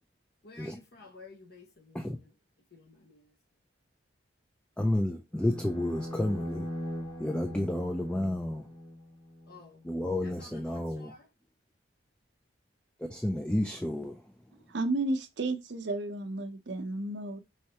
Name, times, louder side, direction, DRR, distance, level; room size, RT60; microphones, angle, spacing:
voice 1, 0.4-2.3 2.7-3.3 9.5-9.9 10.2-11.3, left 3 dB, 55° left, 0.9 m, -52 dB
voice 2, 4.8-6.7 7.2-8.7 9.8-11.1 13.1-14.3, left 1 dB, 5° left, 0.3 m, -31 dB
sound 1, 5.3-9.6, left 1 dB, 35° left, 1.4 m, -40 dB
voice 3, 14.7-17.4, right 2 dB, 60° right, 0.6 m, -32 dB
5.6 x 3.2 x 2.8 m
head